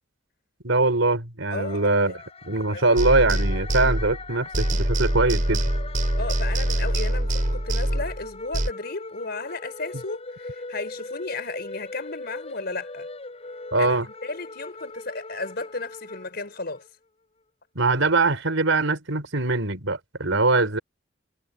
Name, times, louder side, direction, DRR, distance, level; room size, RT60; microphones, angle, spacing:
voice 1, 0.6-2.1 2.4-5.6 13.7-14.1 17.7-20.8, right 3 dB, 75° right, 4.2 m, -22 dB
voice 2, 1.5-2.2 2.7-2.8 6.2-13.1 13.8-16.8, left 3 dB, 55° left, 4.5 m, -34 dB
sound 1, 1.6-16.9, left 3 dB, 30° left, 6.9 m, -40 dB
sound 2, 3.0-4.3 4.5-8.7, right 1 dB, 45° right, 3.9 m, -24 dB
head